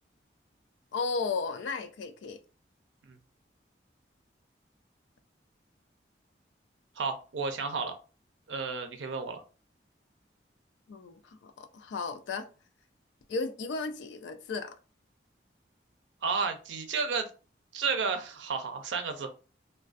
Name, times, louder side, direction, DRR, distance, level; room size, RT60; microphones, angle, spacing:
voice 1, 0.9-2.4 10.9-12.5 13.3-14.7, left 4 dB, 85° left, 0.3 m, -34 dB
voice 2, 7.0-7.9 8.5-9.4 16.2-17.3 17.7-19.3, right 5 dB, 90° right, 0.5 m, -32 dB
2.4 x 2.2 x 2.4 m
head